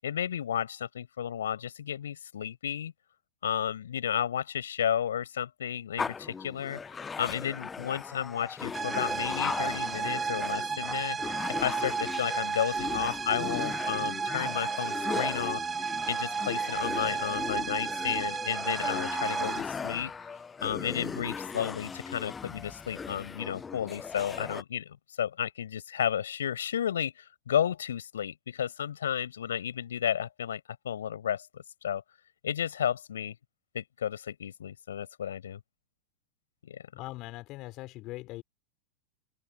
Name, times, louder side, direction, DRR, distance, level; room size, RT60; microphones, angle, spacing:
voice 1, 0.0-2.9 3.4-6.8 7.2-11.2 11.6-15.6 16.1-20.1 20.6-32.0 32.4-33.4 33.7-35.6 36.6-36.8, left 9 dB, 65° left, 7.1 m, -32 dB
sound 1, 6.0-24.6, left 5 dB, 15° left, 1.2 m, -38 dB
sound 2, 8.7-19.6, right 6 dB, 15° right, 1.5 m, -33 dB
voice 2, 36.9-38.4, left 19 dB, 40° left, 5.1 m, -41 dB
open air
figure-of-eight pair, 90°, 0 cm